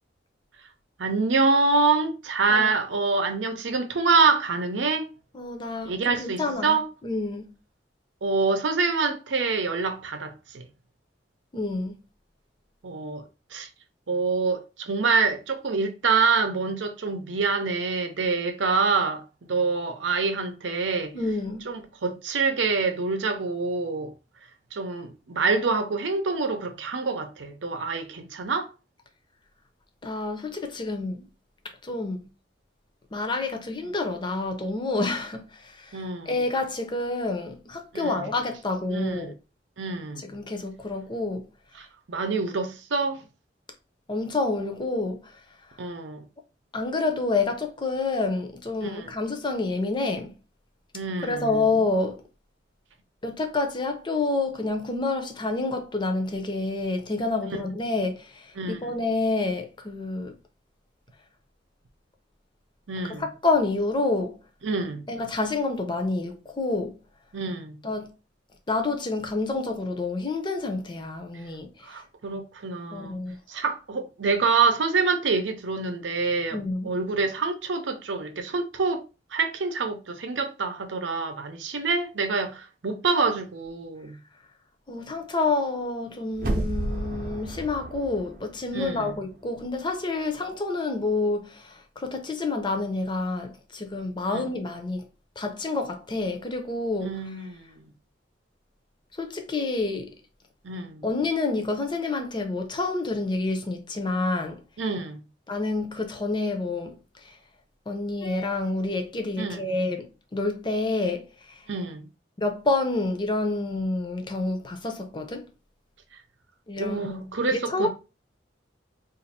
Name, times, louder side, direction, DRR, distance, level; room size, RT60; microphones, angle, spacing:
voice 1, 1.0-5.1 5.8-6.9 8.2-10.6 12.8-13.2 13.5-13.7 14.1-19.2 19.5-21.1 21.7-24.1 24.7-28.7 35.9-36.4 37.9-38.3 38.9-39.3 39.8-40.2 41.7-43.2 45.8-46.2 48.8-49.2 50.9-51.5 58.6-59.0 62.9-63.2 64.6-65.0 67.3-67.8 71.8-73.2 73.5-79.0 79.3-84.2 88.7-89.1 94.3-94.4 97.0-97.8 100.6-101.0 104.8-105.2 109.4-109.6 111.7-112.1 116.8-117.9, right 4 dB, 85° right, 0.7 m, -26 dB
voice 2, 5.3-5.9 6.2-6.8 7.0-7.5 11.5-12.0 21.1-21.7 30.0-31.3 31.8-32.3 33.1-39.3 40.2-41.4 44.1-45.3 46.7-50.3 51.2-52.2 53.2-60.3 63.1-64.4 65.1-67.0 67.8-68.1 68.7-71.7 72.9-73.4 76.5-76.9 84.9-95.1 95.4-97.2 99.2-100.1 101.0-104.6 105.5-107.0 107.9-111.3 112.4-115.4 116.7-117.9, left 3 dB, 25° left, 0.6 m, -28 dB
sound 1, 86.3-89.3 89.6-89.7, right 1 dB, 50° right, 0.7 m, -32 dB
2.6 x 2.5 x 4.1 m
head